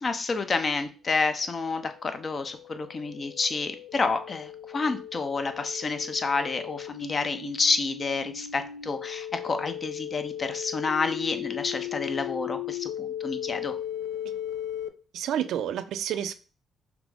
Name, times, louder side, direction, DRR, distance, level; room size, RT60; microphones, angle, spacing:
voice 1, 0.0-13.8, left 4 dB, 40° left, 0.6 m, -29 dB
sound 1, 1.6-14.9, left 11 dB, 90° left, 0.4 m, -37 dB
voice 2, 15.1-16.3, right 10 dB, 80° right, 0.4 m, -29 dB
5.9 x 2.0 x 3.5 m
cardioid pair, 90°, 0 cm